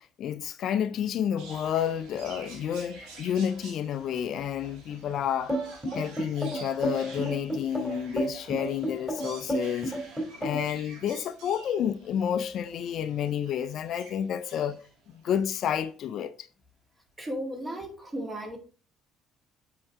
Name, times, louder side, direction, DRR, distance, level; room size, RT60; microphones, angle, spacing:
voice 1, 0.0-5.5 5.9-9.9 10.4-14.8 15.2-16.5, left 9 dB, 55° left, 0.3 m, -30 dB
sound 1, 1.4-15.5 16.1-16.2, right 3 dB, 60° right, 1.8 m, -49 dB
sound 2, 5.5-10.8, right 1 dB, 5° right, 3.1 m, -30 dB
voice 2, 17.2-18.6, equal, 20° right, 1.9 m, -35 dB
7.6 x 4.5 x 3.4 m
figure-of-eight pair, 50°, 0 cm